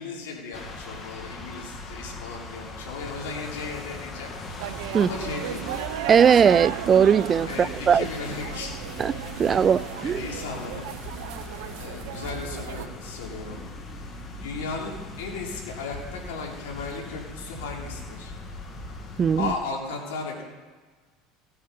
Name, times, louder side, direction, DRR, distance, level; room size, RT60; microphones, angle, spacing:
voice 1, 0.0-4.3 5.0-5.7 7.4-8.8 9.4-9.6 10.0-10.9 11.8-13.6 14.4-18.3 19.4-20.4, left 4 dB, 90° left, 2.9 m, -35 dB
sound 1, 0.5-19.5, left 2 dB, 35° left, 1.9 m, -39 dB
sound 2, 4.6-12.9, right 10 dB, 80° right, 0.8 m, -35 dB
voice 2, 6.1-8.1 9.0-9.1 9.4-10.2 19.2-19.5, right 7 dB, 30° right, 0.3 m, -19 dB
16.5 x 8.5 x 4.0 m
supercardioid pair, 105°, 0 cm